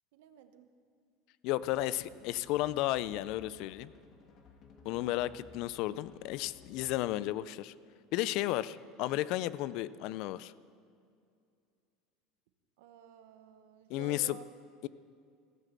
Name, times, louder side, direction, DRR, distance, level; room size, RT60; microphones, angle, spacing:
voice 1, 0.1-0.7 1.7-1.9 4.8-5.4 8.4-8.6 12.8-14.4, right 11 dB, 80° right, 9 dB, 1.0 m, -53 dB
voice 2, 1.4-3.9 4.8-7.7 8.1-10.5 13.9-14.4 14.8-14.9, left 15 dB, 60° left, 18 dB, 0.3 m, -33 dB
sound 1, 1.6-7.1, left 4 dB, 40° left, 1.4 m, -58 dB
16.0 x 6.7 x 7.4 m, 2.3 s
supercardioid pair, 140°, 0 cm